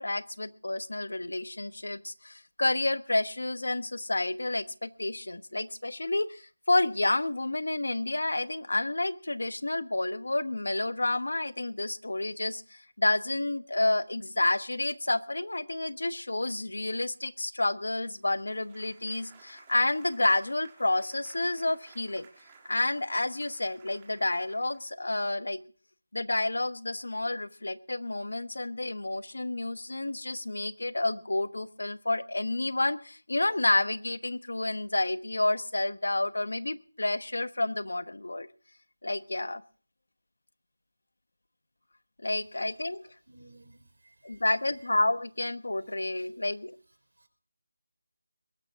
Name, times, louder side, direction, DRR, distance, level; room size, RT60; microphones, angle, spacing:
voice 1, 0.0-22.3 22.7-25.6 26.1-38.5 39.0-39.6 42.2-43.1 44.2-46.8, left 2 dB, 90° left, 13 dB, 1.1 m, -30 dB
sound 1, 18.3-25.1, right 5 dB, 10° right, 1.8 m, -57 dB
voice 2, 43.3-44.4 47.2-47.3, right 2 dB, 75° right, 9 dB, 4.2 m, -56 dB
22.0 x 12.0 x 3.6 m, 0.40 s
figure-of-eight pair, 180°, 0 cm